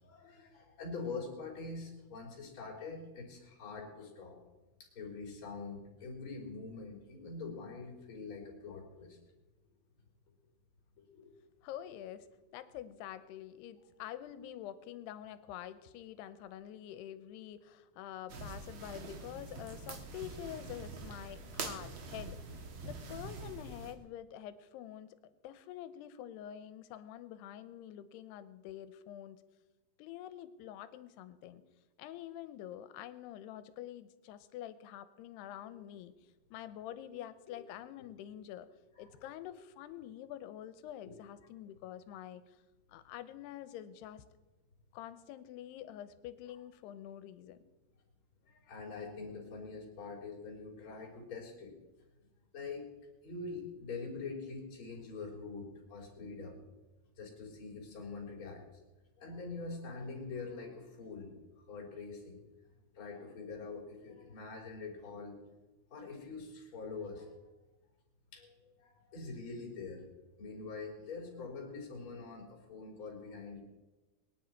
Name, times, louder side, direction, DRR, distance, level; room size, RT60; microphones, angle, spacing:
voice 1, 0.0-4.4 4.8-9.2 11.1-11.3 37.5-37.6 39.0-39.1 41.0-41.2 48.4-51.8 52.5-52.9 53.2-56.6 57.2-58.8 59.2-62.4 62.9-65.4 65.9-67.4 68.3-68.5 68.8-70.0 70.4-73.6, left 4 dB, 30° left, -3 dB, 4.3 m, -44 dB
voice 2, 11.6-12.3 12.5-25.1 25.4-29.4 30.0-31.6 32.0-36.1 36.5-38.7 39.0-42.6 42.9-44.2 44.9-47.6, left 11 dB, 90° left, 13 dB, 2.8 m, -47 dB
sound 1, 18.3-23.9, right 3 dB, 90° right, 1.1 m, -45 dB
22.5 x 10.0 x 4.6 m, 1.1 s
omnidirectional pair, 4.7 m